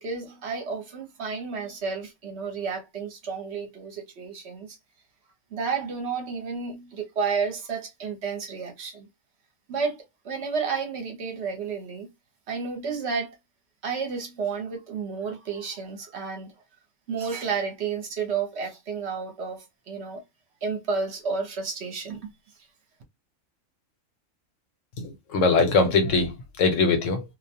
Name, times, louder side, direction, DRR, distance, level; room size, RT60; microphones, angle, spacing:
voice 1, 0.0-4.8 5.5-9.1 9.7-10.0 10.2-12.1 12.5-13.3 13.8-16.5 17.1-20.2 20.6-22.2, right 5 dB, 60° right, 0.9 m, -31 dB
voice 2, 25.0-27.2, left 4 dB, 75° left, 1.1 m, -22 dB
2.4 x 2.1 x 2.7 m
omnidirectional pair, 1.4 m